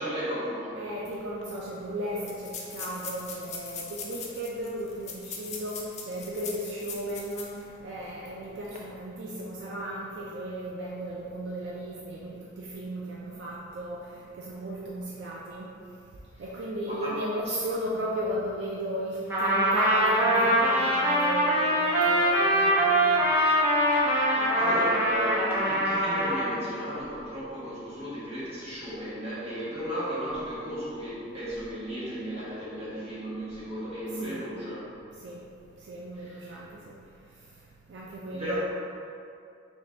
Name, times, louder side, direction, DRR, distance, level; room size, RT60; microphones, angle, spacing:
voice 1, 0.0-0.8 16.8-17.2 17.5-17.6 23.9-34.8 36.2-36.6 38.4-38.6, equal, 30° right, -10 dB, 1.3 m, -35 dB
voice 2, 0.8-7.6 7.8-14.0 14.3-15.7 16.4-23.1 34.2-34.4 35.2-35.4 35.9-36.8 37.9-38.6, right 1 dB, 70° right, -4 dB, 0.4 m, -35 dB
sound 1, 1.1-1.2 1.4-1.5 2.2-7.6 8.0-8.1 8.6-8.8, left 6 dB, 35° left, 0.4 m, -40 dB
Trumpet, 19.3-26.5, right 1 dB, 10° right, 0.6 m, -23 dB
3.6 x 3.0 x 3.7 m, 2.4 s
head